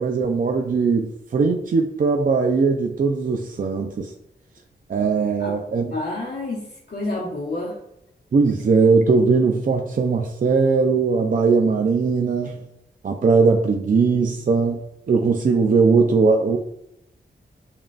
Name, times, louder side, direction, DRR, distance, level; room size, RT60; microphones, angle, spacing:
voice 1, 0.0-4.1 4.9-5.9 8.3-12.6 13.0-16.6, right 4 dB, 45° right, 3 dB, 0.4 m, -19 dB
voice 2, 5.9-7.8, left 2 dB, 60° left, -5 dB, 1.1 m, -29 dB
7.1 x 2.5 x 2.4 m, 0.79 s
cardioid pair, 70°, 19 cm